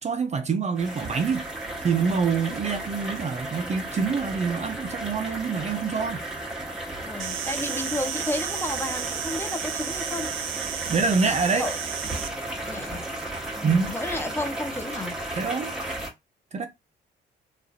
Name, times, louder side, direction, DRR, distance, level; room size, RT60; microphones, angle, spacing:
voice 1, 0.0-1.4 1.8-6.2 10.9-11.7 13.6-13.9 15.4-15.7 16.5-16.7, right 5 dB, 35° right, 0.5 m, -26 dB
sound 1, 0.7-16.1, right 1 dB, 5° right, 1.3 m, -34 dB
voice 2, 7.0-10.3 11.6-11.8 12.6-13.1 13.6-15.1 16.6-16.7, left 2 dB, 10° left, 0.6 m, -32 dB
Insect, 7.2-12.3, right 9 dB, 90° right, 0.5 m, -33 dB
3.0 x 2.4 x 2.7 m
cardioid pair, 90°, 20 cm